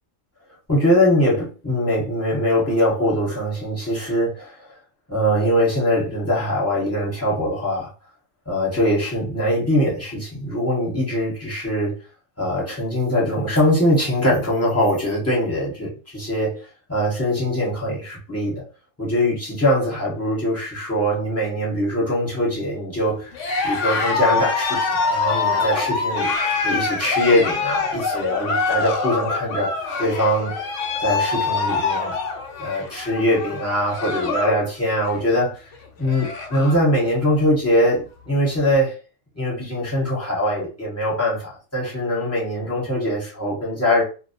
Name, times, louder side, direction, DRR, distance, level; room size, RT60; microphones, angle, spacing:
voice 1, 0.7-4.7 5.1-7.9 8.5-12.0 12.4-16.6 16.9-18.6 19.0-23.3 23.6-29.7 30.0-30.5 31.0-32.2 32.6-35.5 36.0-38.9 39.4-44.0, left 1 dB, 10° left, 1.0 m, -22 dB
Cheering, 23.3-34.6 34.9-35.3 35.7-35.8 36.0-36.9, left 4 dB, 70° left, 0.8 m, -24 dB
2.2 x 2.1 x 2.7 m
omnidirectional pair, 1.3 m